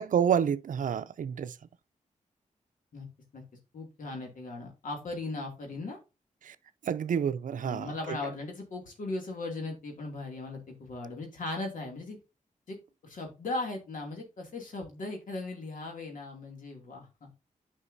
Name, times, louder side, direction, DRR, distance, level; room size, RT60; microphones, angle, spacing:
voice 1, 0.0-1.5 6.4-6.5 6.9-8.2, right 8 dB, 80° right, 0.5 m, -29 dB
voice 2, 3.7-6.0 7.6-12.2 12.7-12.8 13.0-17.3, left 2 dB, 80° left, 2.5 m, -38 dB
9.9 x 5.3 x 2.7 m
cardioid pair, 85°, 14 cm